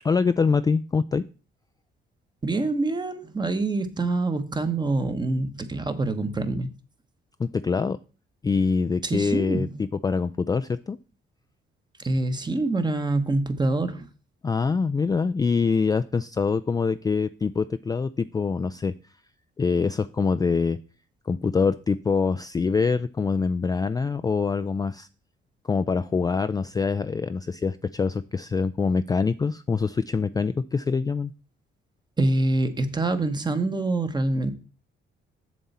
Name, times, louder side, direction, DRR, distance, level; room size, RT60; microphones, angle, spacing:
voice 1, 0.0-1.2 7.4-8.0 8.4-9.7 10.0-11.0 14.4-18.9 19.6-20.8 21.3-25.1 25.6-31.3, left 5 dB, 20° left, 0.3 m, -24 dB
voice 2, 2.4-6.7 9.0-9.8 12.0-14.1 32.2-34.5, right 2 dB, 20° right, 1.1 m, -25 dB
7.4 x 6.9 x 4.2 m
cardioid pair, 90°, 20 cm